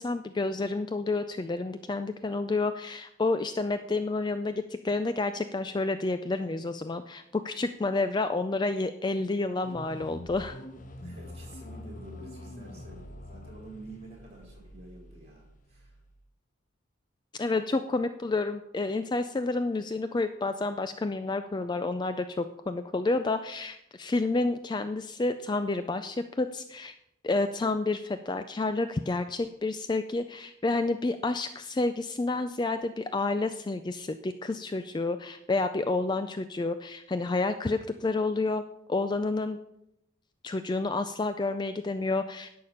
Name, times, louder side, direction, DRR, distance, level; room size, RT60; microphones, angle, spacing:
voice 1, 0.0-10.6 17.4-27.0 27.2-38.6 38.9-39.6 40.4-42.5, left 3 dB, 20° left, 10 dB, 0.3 m, -29 dB
sound 1, 9.6-16.2, left 1 dB, 40° left, 0.9 m, -45 dB
voice 2, 10.9-16.0, right 2 dB, 30° right, -1 dB, 3.9 m, -49 dB
11.0 x 6.6 x 5.6 m, 0.81 s
head